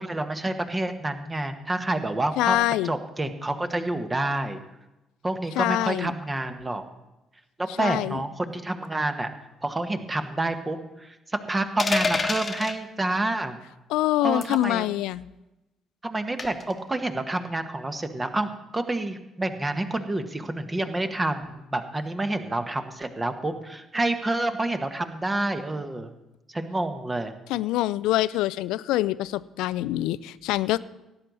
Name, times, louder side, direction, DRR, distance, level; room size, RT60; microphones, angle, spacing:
voice 1, 0.0-2.6 2.8-4.6 5.2-6.8 7.6-9.3 9.6-11.2 11.5-13.6 14.2-14.9 16.0-26.1 26.5-27.3, right 2 dB, 20° right, 8 dB, 1.2 m, -28 dB
voice 2, 2.4-2.9 5.6-6.1 7.8-8.2 13.9-15.3 27.5-30.8, left 15 dB, 65° left, 18 dB, 0.3 m, -25 dB
sound 1, 11.8-12.8 14.4-14.6 16.4-16.7, left 4 dB, 25° left, 1.1 m, -27 dB
17.5 x 9.1 x 4.0 m, 0.96 s
figure-of-eight pair, 45°, 0 cm